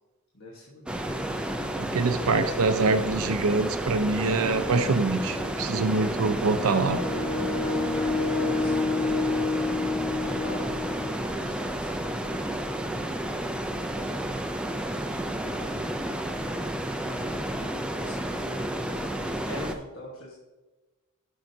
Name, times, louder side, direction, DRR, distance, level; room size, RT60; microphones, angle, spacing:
voice 1, 0.3-1.0 8.6-8.9 10.1-12.9 16.6-20.3, left 1 dB, 60° left, -3 dB, 1.3 m, -45 dB
sound 1, 0.9-19.7, right 1 dB, 5° right, 0.4 m, -31 dB
voice 2, 1.8-7.0, right 3 dB, 75° right, 9 dB, 0.5 m, -25 dB
sound 2, 4.6-11.2, left 3 dB, 20° left, 0.7 m, -30 dB
11.5 x 6.1 x 2.7 m, 1.2 s
head